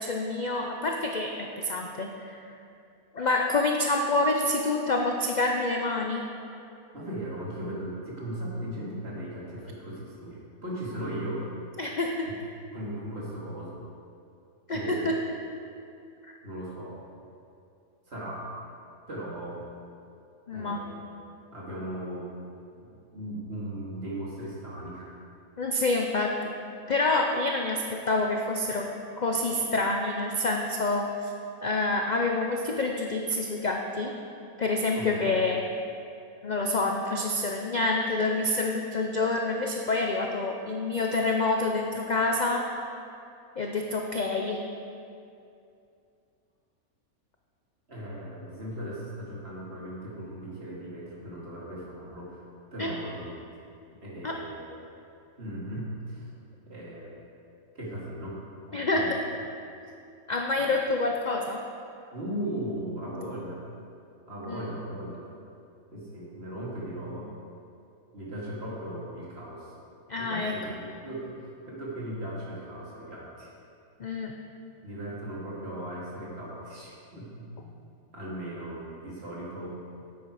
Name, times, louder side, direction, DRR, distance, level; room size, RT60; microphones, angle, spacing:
voice 1, 0.0-2.4 3.1-6.2 11.8-12.3 14.7-15.2 16.2-16.3 20.5-20.8 25.6-26.6 26.9-28.9 29.2-31.3 31.6-34.1 34.6-35.6 36.4-42.7 43.6-44.6 52.8-52.9 54.2-54.4 58.7-59.2 60.3-61.6 64.5-64.7 70.1-70.5 74.0-74.3, left 2 dB, 55° left, 1 dB, 0.5 m, -27 dB
voice 2, 6.9-11.4 12.3-12.4 12.7-13.8 14.7-15.1 16.4-17.0 18.1-18.4 19.1-19.6 20.5-21.1 21.5-22.3 22.8-25.1 34.9-35.4 47.9-52.5 52.7-53.3 54.0-54.8 55.4-56.3 56.7-57.1 57.7-58.4 58.7-59.1 60.6-60.7 62.1-63.6 64.3-65.3 65.9-67.3 68.1-69.7 70.1-73.5 74.8-77.7 78.1-79.7, right 1 dB, 45° right, -6 dB, 2.4 m, -37 dB
10.0 x 8.3 x 4.8 m, 2.5 s
omnidirectional pair, 1.6 m